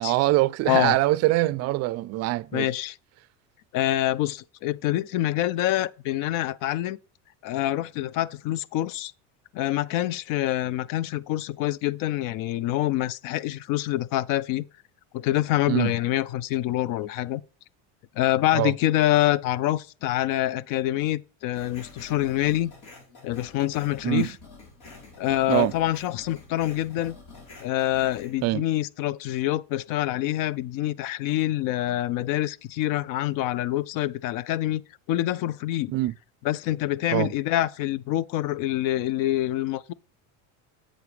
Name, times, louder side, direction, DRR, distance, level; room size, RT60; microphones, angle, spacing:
voice 1, 0.0-2.7 15.7-15.9 18.5-18.7 24.0-24.3 25.5-25.7 28.4-28.6 35.9-36.1 37.1-37.3, right 17 dB, 45° right, 0.4 m, -23 dB
voice 2, 0.7-1.0 2.5-3.0 3.7-7.0 7.4-9.1 9.5-14.6 15.1-17.4 18.2-22.7 23.2-24.3 25.2-27.2 27.6-34.8 35.1-35.9 36.4-39.9, left 14 dB, 55° left, 0.5 m, -26 dB
sound 1, 21.5-28.5, left 3 dB, 75° left, 3.9 m, -47 dB
8.1 x 7.7 x 3.3 m
supercardioid pair, 110°, 38 cm